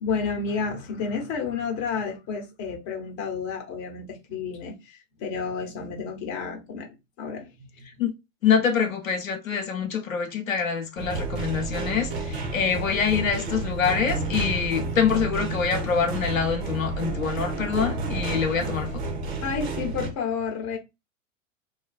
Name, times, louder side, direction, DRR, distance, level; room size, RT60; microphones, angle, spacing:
voice 1, 0.0-7.9 19.4-20.8, left 5 dB, 35° left, 0.9 m, -31 dB
voice 2, 8.4-19.0, left 6 dB, 85° left, 0.7 m, -25 dB
sound 1, 11.0-20.1, right 3 dB, 50° right, 0.8 m, -30 dB
2.5 x 2.3 x 2.3 m
figure-of-eight pair, 95°, 40 cm